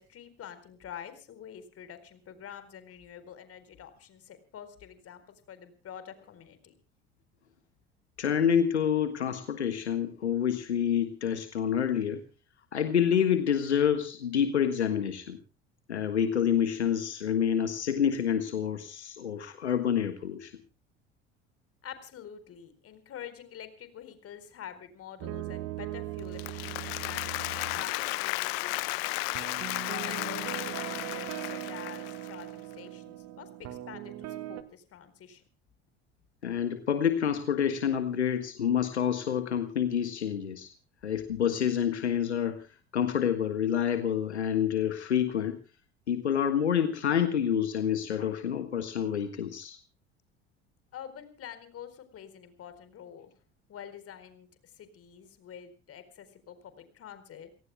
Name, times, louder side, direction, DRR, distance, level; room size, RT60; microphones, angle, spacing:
voice 1, 0.0-6.7 21.8-29.4 29.8-35.4 50.9-53.3 53.7-57.5, left 9 dB, 45° left, 12 dB, 4.3 m, -47 dB
voice 2, 8.2-12.2 12.7-15.4 15.9-20.5 36.4-40.7 41.0-42.7 42.9-45.6 46.1-49.8, left 8 dB, 85° left, 8 dB, 1.6 m, -28 dB
sound 1, 25.2-28.2 29.3-34.6, right 15 dB, 55° right, 1.8 m, -39 dB
Applause, 26.2-32.4, left 25 dB, 65° left, 0.9 m, -34 dB
29.5 x 18.0 x 2.2 m, 0.35 s
hypercardioid pair, 65°, 33 cm